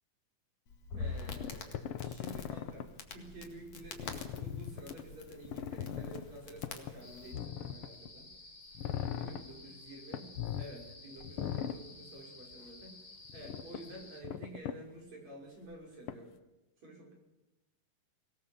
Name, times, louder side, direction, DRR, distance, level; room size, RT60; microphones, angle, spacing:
Crackle, 0.7-7.3, left 4 dB, 55° left, 3.0 m, -46 dB
voice 1, 0.9-8.3 9.2-13.0 13.3-16.3 16.8-17.1, right 1 dB, 50° right, 0 dB, 6.7 m, -50 dB
sound 1, 1.3-2.8 3.8-5.0 5.4-6.2 6.6-6.9 7.3-8.1 8.7-9.4 10.1-10.7 11.2-11.8 13.2-13.8 14.2-14.7 16.1-16.2, left 9 dB, 80° left, 1.2 m, -39 dB
sound 2, 7.0-14.2, left 2 dB, 30° left, 0.7 m, -54 dB
24.5 x 18.0 x 7.1 m, 1.0 s
omnidirectional pair, 3.9 m